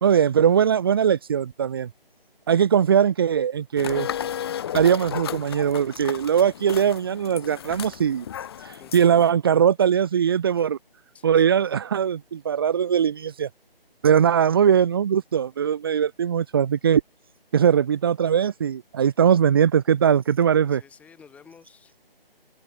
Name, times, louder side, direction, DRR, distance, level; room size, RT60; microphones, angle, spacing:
voice 1, 0.0-1.9 2.5-4.1 4.7-8.2 8.6-10.8 11.2-13.5 14.0-17.0 17.5-20.8, right 8 dB, 25° right, 1.5 m, -20 dB
sound 1, 3.8-9.3, left 9 dB, 25° left, 3.9 m, -34 dB
voice 2, 8.8-9.2 11.1-11.6 20.7-21.9, left 6 dB, 5° left, 7.5 m, -51 dB
figure-of-eight pair, 155°, 30 cm